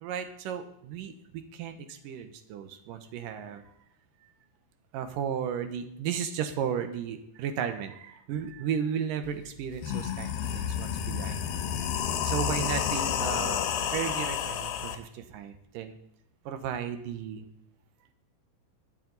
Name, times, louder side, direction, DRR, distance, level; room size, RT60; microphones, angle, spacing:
voice 1, 0.0-3.6 4.2-4.3 4.9-11.4 12.2-16.0 16.5-17.5, right 8 dB, 70° right, 8 dB, 2.5 m, -34 dB
sound 1, 9.2-9.3 9.7-15.0, left 9 dB, 80° left, 2.7 m, -30 dB
20.5 x 7.6 x 4.0 m, 0.79 s
omnidirectional pair, 4.3 m